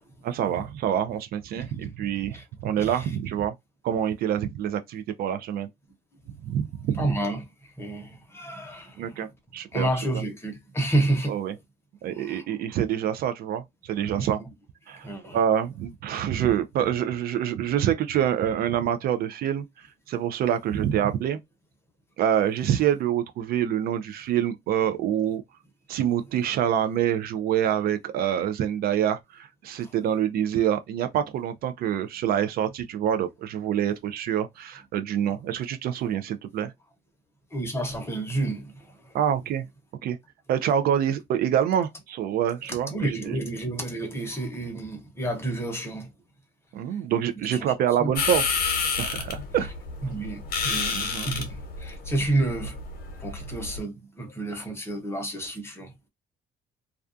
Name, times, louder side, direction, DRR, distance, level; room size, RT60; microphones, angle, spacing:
voice 1, 0.2-3.5 3.8-5.7 6.4-7.1 9.0-9.9 11.3-11.5 12.0-14.4 14.9-19.6 20.1-21.4 22.2-25.4 25.9-36.7 39.1-39.7 40.0-40.2 40.5-43.4 46.7-48.4 49.0-49.7 50.9-51.3, right 10 dB, 65° right, 0.4 m, -26 dB
voice 2, 7.0-9.3 9.7-11.4 12.0-12.5 14.2-14.5 15.0-15.4 29.8-29.9 37.5-39.2 42.7-46.1 47.4-47.7 48.0-48.1 50.0-52.7 53.2-55.9, right 2 dB, 15° left, 0.9 m, -30 dB
sound 1, 48.2-53.8, left 5 dB, 60° left, 0.9 m, -30 dB
2.3 x 2.3 x 2.5 m
cardioid pair, 110°, 17 cm